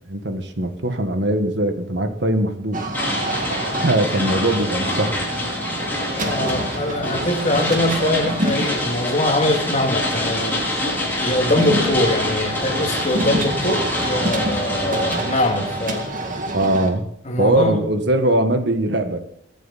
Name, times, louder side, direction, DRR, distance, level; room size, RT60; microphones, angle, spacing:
voice 1, 0.1-2.8 3.7-5.1 16.5-17.1 17.4-19.2, right 1 dB, 60° right, 7 dB, 1.5 m, -21 dB
sound 1, 2.7-16.9, right 1 dB, 45° right, 2.0 m, -28 dB
sound 2, 2.9-16.1, left 1 dB, 10° left, 5.3 m, -26 dB
voice 2, 6.1-10.7 11.2-16.1 17.3-17.8, left 1 dB, 35° left, 2 dB, 2.3 m, -22 dB
22.5 x 9.3 x 4.2 m, 0.67 s
head